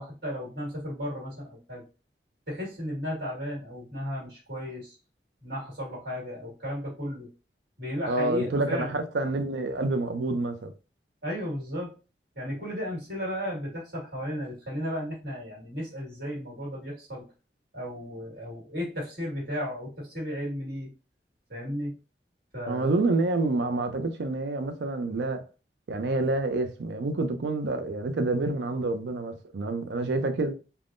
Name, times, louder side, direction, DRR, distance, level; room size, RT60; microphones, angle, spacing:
voice 1, 0.0-1.8 2.5-4.9 5.4-7.3 7.8-8.9 11.2-11.9 12.3-17.2 17.7-20.9 21.5-21.9 22.5-23.0, equal, 65° right, 1.7 m, -34 dB
voice 2, 8.1-10.7 22.7-25.4 25.9-30.5, right 2 dB, 85° right, 0.5 m, -28 dB
3.4 x 2.1 x 2.5 m
head